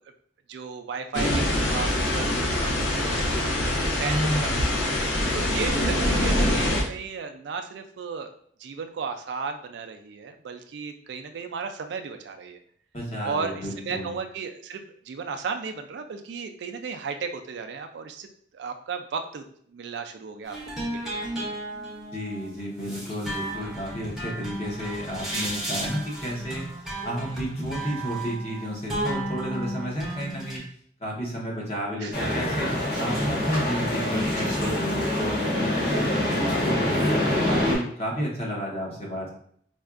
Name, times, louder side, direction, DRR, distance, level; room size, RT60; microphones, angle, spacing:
voice 1, 0.5-1.9 2.1-3.7 4.0-4.5 5.3-8.3 8.6-12.6 13.2-18.3 18.5-20.6 20.9-21.1 25.3-25.5 32.0-32.1 37.5-37.9, right 5 dB, 70° right, 7 dB, 0.3 m, -34 dB
sound 1, 1.1-6.8, left 1 dB, 80° left, 0.6 m, -24 dB
voice 2, 4.0-4.7 12.9-14.1 22.1-26.6 27.0-30.6 31.0-32.7 33.0-37.1 37.5-39.3, equal, 35° left, -4 dB, 0.9 m, -31 dB
sound 2, 20.4-30.6, right 1 dB, ahead, 0.7 m, -34 dB
sound 3, 32.1-37.8, left 1 dB, 55° left, 1.3 m, -25 dB
4.3 x 2.3 x 2.4 m, 0.62 s
head